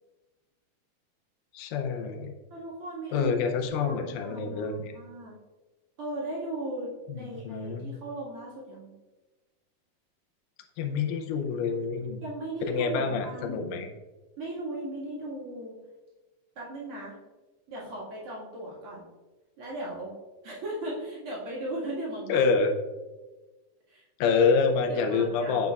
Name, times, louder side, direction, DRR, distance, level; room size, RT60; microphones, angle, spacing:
voice 1, 1.5-2.3 3.1-4.9 7.1-7.9 10.8-12.2 12.7-13.9 22.3-22.7 24.2-25.7, left 5 dB, 85° left, 4 dB, 2.3 m, -27 dB
voice 2, 2.5-3.4 3.7-5.4 6.0-8.9 12.2-13.7 14.4-15.8 16.6-17.2 17.7-19.1 19.6-20.1 20.4-22.5 23.9-24.4 24.8-25.7, right 1 dB, 45° right, -6 dB, 2.4 m, -37 dB
9.2 x 5.2 x 2.4 m, 1.2 s
omnidirectional pair, 3.8 m